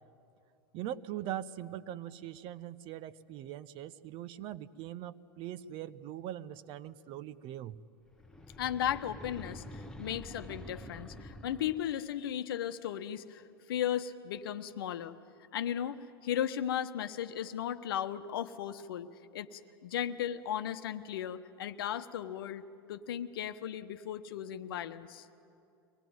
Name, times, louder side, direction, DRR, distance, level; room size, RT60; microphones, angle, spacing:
voice 1, 0.7-7.8, right 12 dB, 40° right, 15 dB, 0.8 m, -41 dB
sound 1, 8.1-12.0, left 1 dB, 5° left, 1.1 m, -47 dB
voice 2, 8.6-13.4 13.7-15.1 15.5-22.6 22.9-25.2, left 10 dB, 65° left, 10 dB, 1.0 m, -36 dB
23.5 x 18.5 x 9.4 m, 2.5 s
figure-of-eight pair, 90°, 13 cm